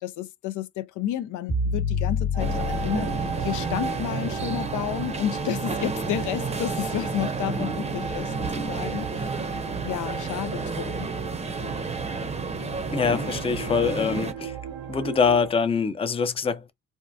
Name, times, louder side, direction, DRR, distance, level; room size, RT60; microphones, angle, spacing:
voice 1, 0.0-9.3 9.8-11.1, left 11 dB, 80° left, 0.5 m, -31 dB
sound 1, 1.5-4.6, left 4 dB, 45° left, 1.1 m, -29 dB
sound 2, 2.3-15.5, right 7 dB, 75° right, 0.6 m, -35 dB
sound 3, 2.4-14.3, right 3 dB, 20° right, 0.6 m, -31 dB
voice 2, 12.9-14.5 14.9-16.7, left 5 dB, 20° left, 0.4 m, -24 dB
3.5 x 2.2 x 2.6 m
cardioid pair, 90°, 30 cm